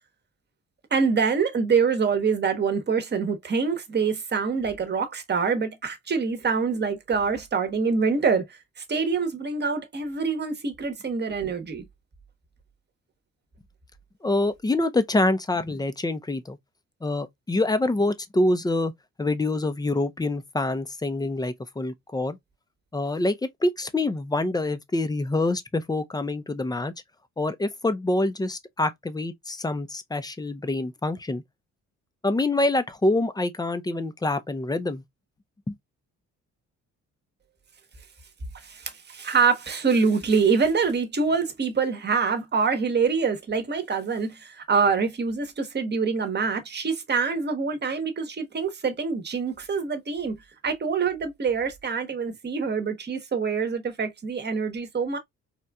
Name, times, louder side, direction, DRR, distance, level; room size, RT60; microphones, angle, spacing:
voice 1, 0.9-11.8 38.5-50.4 50.6-55.2, right 5 dB, 35° right, 1.0 m, -25 dB
voice 2, 14.2-16.6 17.0-18.9 19.2-22.4 22.9-23.4 23.6-26.9 27.4-31.4 32.2-35.0 35.7-35.8, left 2 dB, 15° left, 0.5 m, -26 dB
4.2 x 2.5 x 2.2 m
cardioid pair, 90°, 30 cm